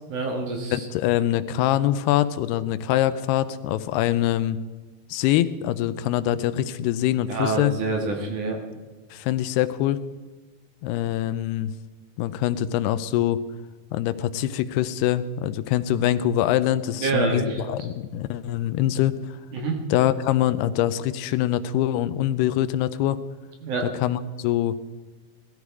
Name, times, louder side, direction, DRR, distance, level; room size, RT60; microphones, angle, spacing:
voice 1, 0.1-0.9 7.3-8.6 17.0-17.7 19.5-19.8 23.6-23.9, right 3 dB, 60° right, 2 dB, 2.9 m, -26 dB
voice 2, 0.7-4.6 5.1-7.7 9.1-10.0 10.8-11.7 12.2-13.4 13.9-19.4 19.9-23.2 24.0-24.8, left 12 dB, 85° left, 13 dB, 2.7 m, -24 dB
17.5 x 13.0 x 4.8 m, 1.3 s
omnidirectional pair, 4.6 m